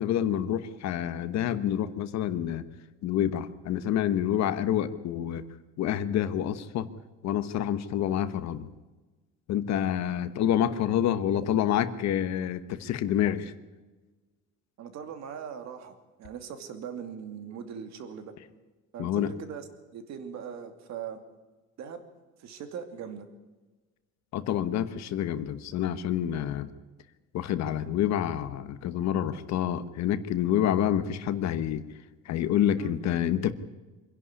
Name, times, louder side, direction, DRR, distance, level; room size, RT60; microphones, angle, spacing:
voice 1, 0.0-2.6 3.0-5.4 5.8-6.9 7.2-8.7 9.5-13.5 19.0-19.3 24.3-26.7 27.3-31.8 32.2-33.5, left 10 dB, 55° left, 12 dB, 1.1 m, -28 dB
voice 2, 14.8-18.3 18.9-19.6 19.9-21.2 21.8-22.0 22.4-23.3 32.8-33.0, right 7 dB, 55° right, 8 dB, 2.7 m, -40 dB
24.5 x 11.5 x 9.8 m, 1.2 s
cardioid pair, 165°, 32 cm